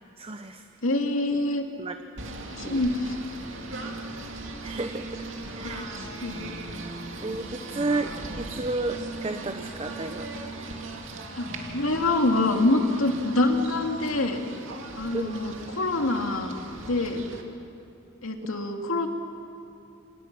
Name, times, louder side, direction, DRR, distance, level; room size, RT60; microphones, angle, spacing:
voice 1, 0.2-0.7 1.8-2.0 2.6-2.8 4.6-5.9 7.2-10.3 15.1-15.3, right 2 dB, 30° right, 7 dB, 0.9 m, -32 dB
voice 2, 0.8-1.6 2.5-3.1 5.8-5.9 6.2-6.5 11.4-11.5 11.7-14.4 15.0-16.5 16.8-17.2 18.2-19.1, left 2 dB, 85° left, 3 dB, 2.5 m, -25 dB
Singing / Bird, 2.2-17.4, right 2 dB, 65° right, 2.6 m, -38 dB
27.5 x 27.0 x 6.1 m, 2.8 s
head